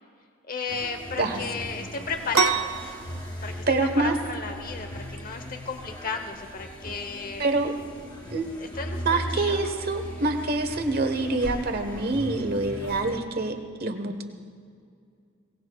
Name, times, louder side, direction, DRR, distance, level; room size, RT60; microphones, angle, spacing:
voice 1, 0.5-3.0 3.4-3.6 4.0-7.4 8.6-9.6, left 4 dB, 40° left, 6 dB, 0.9 m, -33 dB
sound 1, 0.7-13.2, equal, 20° left, 2.0 m, -38 dB
sound 2, 2.3-9.7, right 7 dB, 75° right, 0.6 m, -32 dB
voice 2, 3.7-4.1 7.4-7.7 8.3-8.4 9.0-14.2, right 2 dB, 45° right, 6 dB, 1.2 m, -26 dB
22.5 x 18.0 x 2.4 m, 2.3 s
head